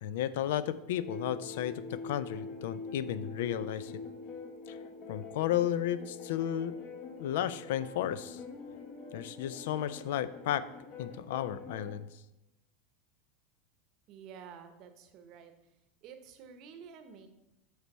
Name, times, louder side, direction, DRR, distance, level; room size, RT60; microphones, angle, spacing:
voice 1, 0.0-3.9 4.7-4.8 5.1-6.8 7.2-8.4 9.1-10.7 11.0-12.1, left 11 dB, 75° left, 15 dB, 0.3 m, -33 dB
sound 1, 0.9-11.9, left 4 dB, 45° left, 1.0 m, -45 dB
voice 2, 14.1-15.8 16.0-17.3, right 7 dB, 45° right, 8 dB, 0.8 m, -50 dB
7.9 x 3.4 x 5.3 m, 0.91 s
supercardioid pair, 140°, 0 cm